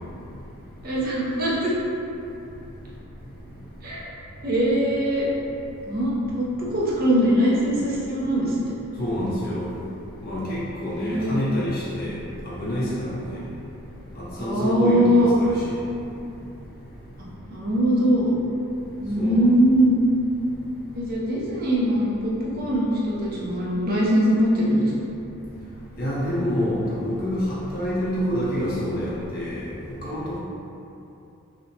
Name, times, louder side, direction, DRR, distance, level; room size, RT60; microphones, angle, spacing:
voice 1, 0.8-1.7 3.8-4.1 4.4-5.3 5.9-8.7 10.9-11.4 14.4-15.3 17.2-18.3 19.0-20.0 20.9-24.9, equal, 40° right, -5 dB, 0.5 m, -22 dB
voice 2, 9.0-9.6 10.2-12.2 12.4-13.4 14.2-15.7 19.2-19.5 26.0-29.7 30.0-30.4, equal, 40° left, -8 dB, 0.6 m, -27 dB
2.8 x 2.0 x 2.7 m, 2.7 s
head